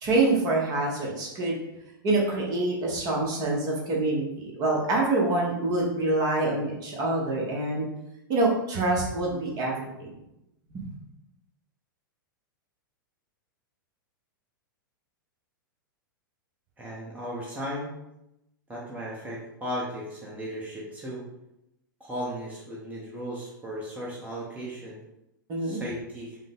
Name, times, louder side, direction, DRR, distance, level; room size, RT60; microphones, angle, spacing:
voice 1, 0.0-1.6 2.0-7.9 8.3-10.1 10.7-10.9 25.5-25.8, right 2 dB, 35° right, -2 dB, 1.2 m, -26 dB
voice 2, 16.8-17.9 18.7-21.2 22.0-25.0 25.6-26.4, equal, 15° right, -5 dB, 1.0 m, -36 dB
5.3 x 2.2 x 3.6 m, 0.88 s
figure-of-eight pair, 100°, 12 cm